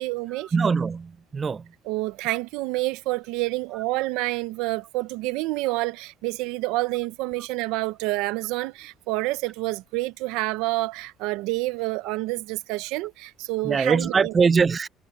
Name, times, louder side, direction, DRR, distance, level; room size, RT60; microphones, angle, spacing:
voice 1, 0.0-0.5 1.8-14.3, right 20 dB, 90° right, 0.8 m, -28 dB
voice 2, 0.5-1.6 13.6-14.9, right 5 dB, 30° right, 0.5 m, -22 dB
cardioid pair, 115°, 0 cm